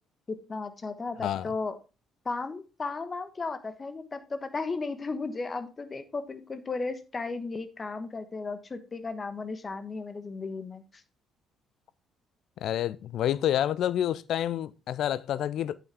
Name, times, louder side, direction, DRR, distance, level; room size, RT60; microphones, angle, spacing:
voice 1, 0.3-1.8 2.2-11.0, left 3 dB, 30° left, 1.2 m, -35 dB
voice 2, 12.6-15.8, left 11 dB, 60° left, 0.4 m, -28 dB
8.5 x 6.9 x 3.5 m
figure-of-eight pair, 45°, 0 cm